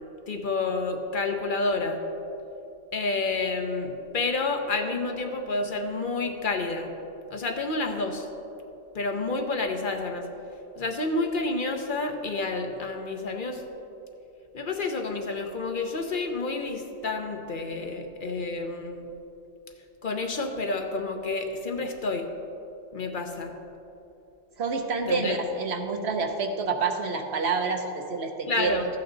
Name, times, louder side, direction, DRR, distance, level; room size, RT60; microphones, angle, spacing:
voice 1, 0.3-2.0 2.9-6.9 7.3-8.3 8.9-10.3 10.8-13.6 14.5-19.1 20.0-22.3 22.9-23.6 25.1-25.4 28.5-28.9, left 3 dB, 50° left, 5 dB, 0.8 m, -29 dB
voice 2, 24.6-28.8, right 4 dB, 70° right, 4 dB, 1.1 m, -28 dB
13.5 x 8.6 x 3.9 m, 3.0 s
omnidirectional pair, 1.1 m